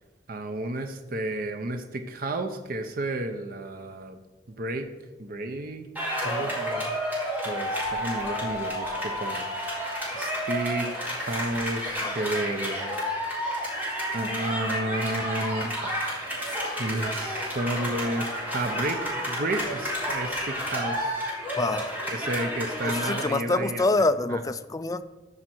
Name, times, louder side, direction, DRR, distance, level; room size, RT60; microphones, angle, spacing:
voice 1, 0.3-4.2 4.6-4.9 5.2-5.9 6.2-6.9 7.4-9.5 10.1-12.9 14.1-16.5 16.8-18.3 18.5-21.3 22.1-23.8 24.3-24.4, right 2 dB, 55° right, 6 dB, 0.7 m, -32 dB
sound 1, 5.9-23.2, equal, 10° right, 3.7 m, -31 dB
voice 2, 21.6-22.0 22.8-25.0, left 2 dB, 20° left, 11 dB, 0.4 m, -26 dB
14.0 x 5.1 x 4.5 m, 1.2 s
head